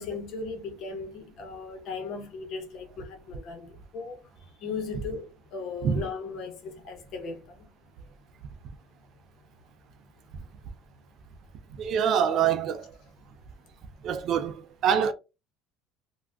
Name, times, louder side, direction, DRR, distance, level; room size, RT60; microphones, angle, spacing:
voice 1, 0.0-4.2 4.6-7.4, left 4 dB, 55° left, 0.9 m, -37 dB
voice 2, 11.7-12.9 14.0-15.1, right 8 dB, 50° right, 0.4 m, -25 dB
3.3 x 2.3 x 2.4 m
cardioid pair, 125°, 0 cm